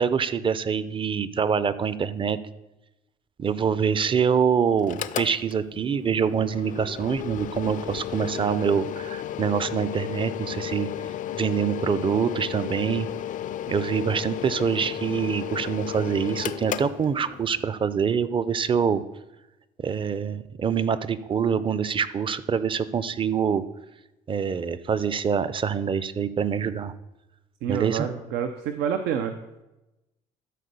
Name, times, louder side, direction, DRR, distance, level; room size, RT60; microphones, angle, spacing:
voice 1, 0.0-2.4 3.4-10.9 11.4-13.1 13.7-19.0 19.8-23.6 24.3-26.9 27.7-28.1, right 7 dB, 30° right, 15 dB, 0.5 m, -25 dB
Mechanical fan, 4.8-17.6, left 11 dB, 50° left, 0.5 m, -34 dB
voice 2, 27.6-29.4, right 8 dB, 85° right, 7 dB, 0.7 m, -28 dB
12.5 x 4.3 x 6.8 m, 1.0 s
cardioid pair, 110°, 17 cm